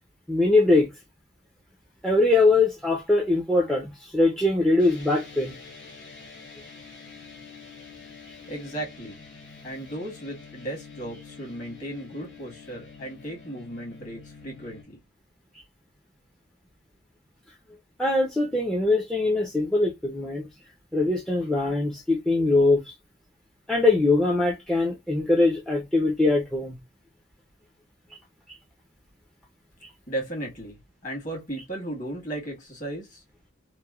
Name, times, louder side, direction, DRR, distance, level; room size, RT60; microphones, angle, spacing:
voice 1, 0.3-0.9 2.0-5.5 18.0-20.5 20.9-22.9 23.7-26.8, left 2 dB, ahead, 0.4 m, -22 dB
sound 1, 4.8-14.8, left 5 dB, 60° left, 1.5 m, -46 dB
voice 2, 8.5-9.2 9.6-15.0 30.1-33.2, right 1 dB, 40° left, 1.4 m, -35 dB
3.0 x 2.1 x 2.2 m
head